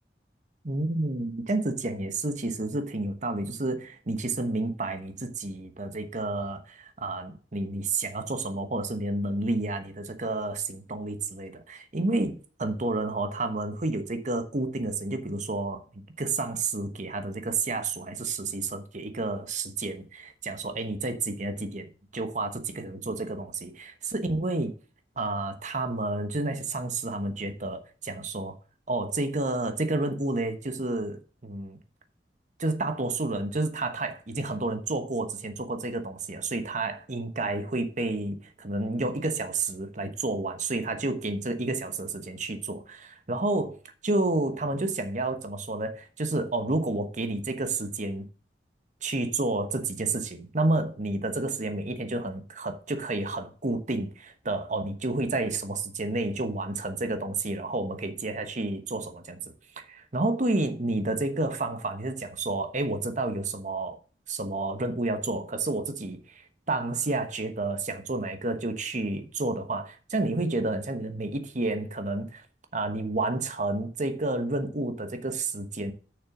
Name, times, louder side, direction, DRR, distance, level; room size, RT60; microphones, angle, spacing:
voice 1, 0.6-24.7 25.2-28.5 28.9-31.8 32.6-43.8 44.0-48.3 49.0-64.0 64.3-72.4 72.7-75.9, right 2 dB, 45° right, 1.1 m, -30 dB
7.0 x 6.5 x 6.1 m
head